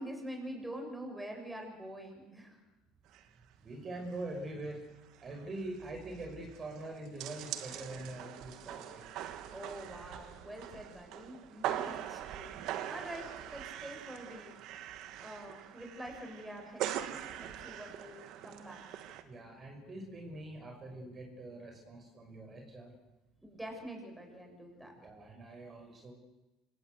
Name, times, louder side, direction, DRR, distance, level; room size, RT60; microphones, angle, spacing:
voice 1, 0.0-2.6 9.5-12.5 12.9-14.5 15.2-19.0 23.4-24.9, right 1 dB, 5° right, 3 dB, 7.5 m, -46 dB
sound 1, 3.1-3.3 3.5-3.6 4.1-4.4 4.7-4.8 5.0-19.2, right 11 dB, 65° right, 2.0 m, -42 dB
voice 2, 3.6-4.9 5.2-9.0 19.2-22.9 24.9-26.1, right 2 dB, 35° right, 3 dB, 6.1 m, -44 dB
26.5 x 17.0 x 8.4 m, 1.0 s
supercardioid pair, 85°, 0 cm